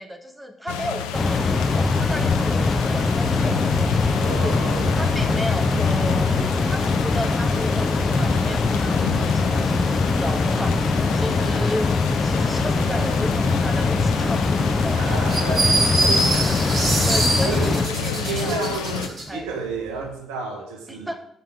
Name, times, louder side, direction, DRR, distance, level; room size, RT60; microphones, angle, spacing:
voice 1, 0.0-4.6 4.9-6.3 6.7-11.9 12.2-15.2 15.5-15.6 17.1-18.6 19.3-19.5 20.9-21.2, equal, 10° right, 5 dB, 1.7 m, -33 dB
sound 1, 0.7-19.1, left 8 dB, 75° left, 0.7 m, -30 dB
sound 2, 1.1-17.9, left 3 dB, 30° left, 0.8 m, -22 dB
voice 2, 4.2-5.6 15.0-16.3 17.4-17.7 18.2-21.1, right 4 dB, 70° right, 3 dB, 1.5 m, -31 dB
sound 3, 15.3-19.3, right 2 dB, 45° right, 2.9 m, -24 dB
13.5 x 5.6 x 5.1 m, 0.74 s
figure-of-eight pair, 45°, 0 cm